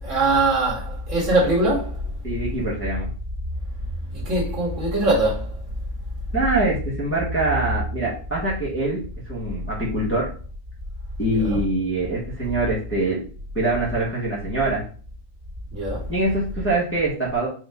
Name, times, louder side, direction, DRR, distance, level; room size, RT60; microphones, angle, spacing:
voice 1, 0.0-2.0 4.1-5.5 11.3-11.6 15.7-16.0, right 2 dB, 70° right, 2.0 m, -22 dB
voice 2, 2.2-3.1 6.3-10.3 11.2-13.2 13.5-14.8 16.1-17.5, right 2 dB, 10° left, 0.9 m, -24 dB
4.7 x 2.5 x 3.3 m
omnidirectional pair, 1.4 m